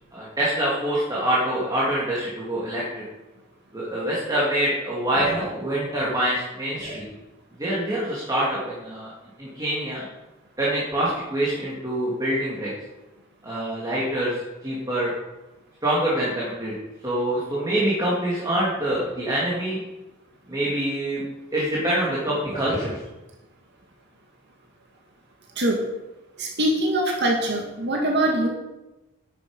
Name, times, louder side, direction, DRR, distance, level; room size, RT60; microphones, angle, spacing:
voice 1, 0.1-3.0 3.7-7.1 7.6-9.1 9.4-10.0 10.6-12.7 13.4-14.3 14.6-15.1 15.8-16.7 17.0-19.8 20.5-21.2 21.5-23.0, right 1 dB, 20° right, -7 dB, 3.0 m, -25 dB
voice 2, 26.4-28.5, right 1 dB, 55° right, 0 dB, 2.0 m, -23 dB
11.5 x 9.1 x 5.3 m, 1.0 s
head